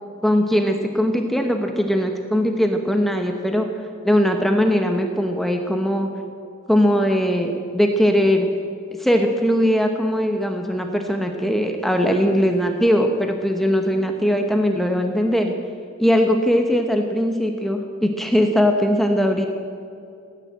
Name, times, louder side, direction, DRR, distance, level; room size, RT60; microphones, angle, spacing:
voice 1, 0.2-3.7 4.0-6.1 6.7-8.5 9.0-15.5 16.0-19.5, equal, ahead, 4 dB, 0.9 m, -20 dB
16.5 x 9.7 x 8.9 m, 2.4 s
head